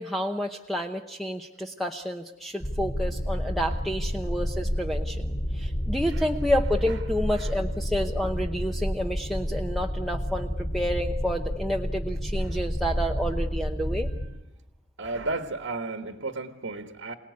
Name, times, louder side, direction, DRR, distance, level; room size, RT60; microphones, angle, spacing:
voice 1, 0.0-14.1, equal, ahead, 3 dB, 0.8 m, -30 dB
sound 1, 2.6-14.3, equal, 35° left, 3.7 m, -30 dB
voice 2, 5.9-6.2 7.4-7.5 12.4-12.5 15.0-17.1, right 2 dB, 65° right, 8 dB, 1.6 m, -33 dB
27.5 x 19.0 x 9.6 m, 1.0 s
head